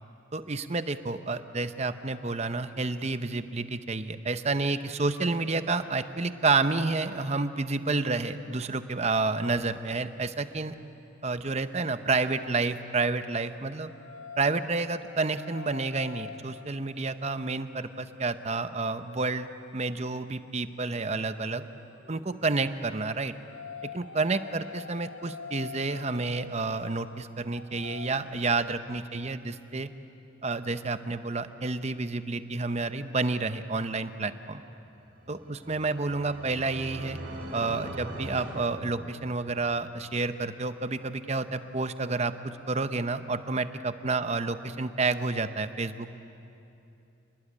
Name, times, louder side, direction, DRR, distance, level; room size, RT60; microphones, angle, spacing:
voice 1, 0.3-10.7 11.2-13.9 14.4-21.6 22.1-23.3 23.9-29.9 30.4-34.6 35.3-37.2 37.5-46.1, right 3 dB, 35° right, 10 dB, 0.8 m, -30 dB
sound 1, 12.4-20.7 21.8-28.6, left 6 dB, 85° left, 1.9 m, -47 dB
sound 2, 35.1-39.6, right 1 dB, 55° right, 3.5 m, -41 dB
27.5 x 20.0 x 8.7 m, 2.8 s
head